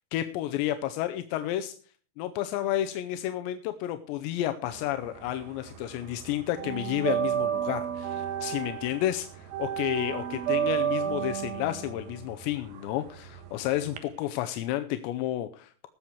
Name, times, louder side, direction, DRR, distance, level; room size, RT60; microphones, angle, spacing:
voice 1, 0.0-1.7 2.2-15.9, left 13 dB, 85° left, 8 dB, 3.0 m, -31 dB
sound 1, 4.7-5.8 6.1-14.0, right 10 dB, 65° right, 2.8 m, -31 dB
19.0 x 7.2 x 4.6 m, 0.41 s
omnidirectional pair, 4.9 m